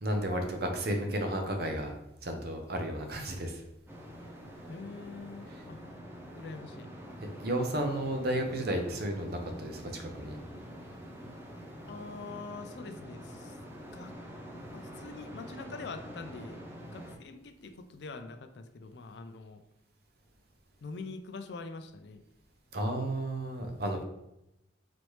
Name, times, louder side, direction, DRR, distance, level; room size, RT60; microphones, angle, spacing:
voice 1, 0.0-1.9 2.2-3.6 7.4-10.4 22.7-24.0, right 1 dB, 60° right, 4 dB, 0.7 m, -32 dB
sound 1, 3.9-17.2, equal, 15° right, 0.5 m, -46 dB
voice 2, 4.7-5.8 6.3-6.9 11.9-13.6 13.9-14.1 14.7-19.6 20.8-22.2, left 4 dB, 65° left, 8 dB, 0.4 m, -44 dB
4.0 x 3.1 x 3.2 m, 0.86 s
head